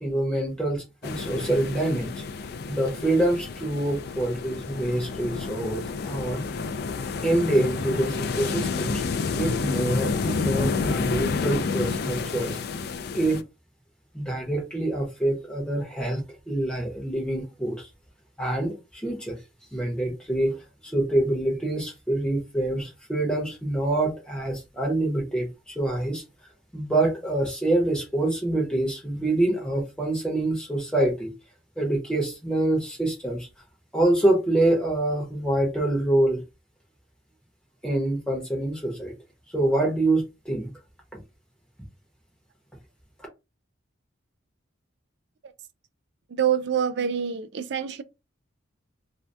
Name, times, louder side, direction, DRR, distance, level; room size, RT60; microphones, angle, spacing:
voice 1, 0.0-2.2 2.7-6.4 7.2-9.0 9.4-12.6 13.1-13.4 14.1-17.9 18.4-19.4 19.7-26.2 26.7-31.3 31.8-33.5 33.9-36.4 37.8-39.1 39.5-40.7 41.1-41.2, right 1 dB, 5° left, 0.9 m, -26 dB
sound 1, 1.0-13.4, left 4 dB, 50° left, 0.3 m, -30 dB
voice 2, 46.3-48.0, right 8 dB, 60° right, 0.3 m, -26 dB
2.7 x 2.2 x 3.3 m
head